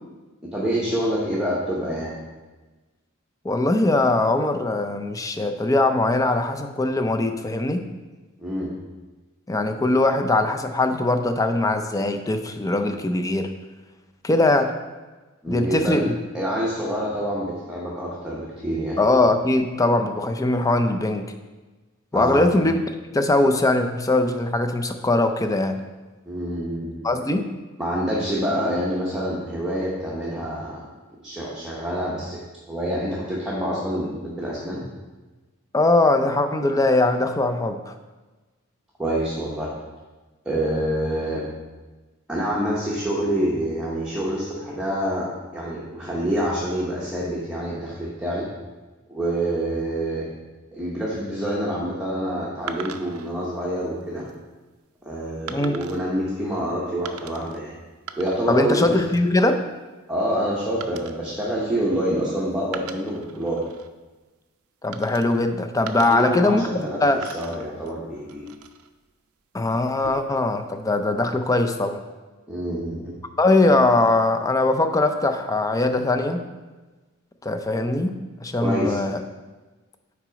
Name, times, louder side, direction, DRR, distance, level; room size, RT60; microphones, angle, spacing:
voice 1, 0.4-2.2 8.4-8.7 15.4-16.1 16.3-19.0 22.1-22.4 26.2-27.0 27.8-30.8 31.2-32.4 32.7-34.8 39.0-39.7 40.4-41.4 42.3-48.5 49.1-50.3 50.7-54.3 55.0-57.7 58.2-59.0 60.1-63.6 66.1-68.5 72.5-73.2 78.6-79.0, equal, 5° right, -7 dB, 0.9 m, -27 dB
voice 2, 3.4-7.8 9.5-13.5 14.2-14.7 15.5-16.0 19.0-21.2 22.1-22.8 23.1-25.8 27.0-27.5 35.7-37.9 55.5-55.8 58.5-59.6 64.8-67.2 69.5-72.0 73.4-76.4 77.4-79.2, left 2 dB, 15° left, 7 dB, 0.4 m, -21 dB
sound 1, 52.7-53.3 54.0-54.3 55.5-56.1 57.0-57.6 57.9-58.6 58.9-59.3 60.8-62.3 62.6-63.9 64.9-65.5 65.9-66.9 67.2-68.9 69.8-70.5, right 7 dB, 85° right, 0.5 m, -40 dB
6.0 x 4.7 x 5.1 m, 1.2 s
head